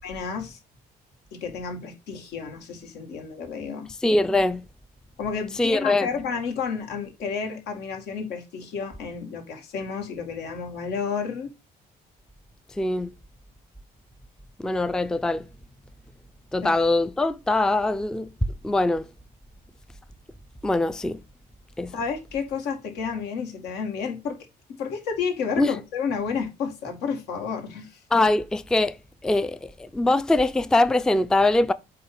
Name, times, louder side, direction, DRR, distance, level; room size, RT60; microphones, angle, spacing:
voice 1, 0.0-0.6 1.3-3.9 5.2-11.5 16.6-16.7 21.9-24.4 24.8-28.0, left 6 dB, 80° left, 2.1 m, -31 dB
voice 2, 4.0-4.6 5.6-6.1 12.8-13.1 14.6-15.5 16.5-18.3 18.6-19.0 20.6-21.2 21.8-22.0 25.6-25.7 28.1-29.0 29.2-31.7, left 2 dB, 5° left, 0.4 m, -22 dB
7.6 x 2.8 x 5.9 m
cardioid pair, 110°, 17 cm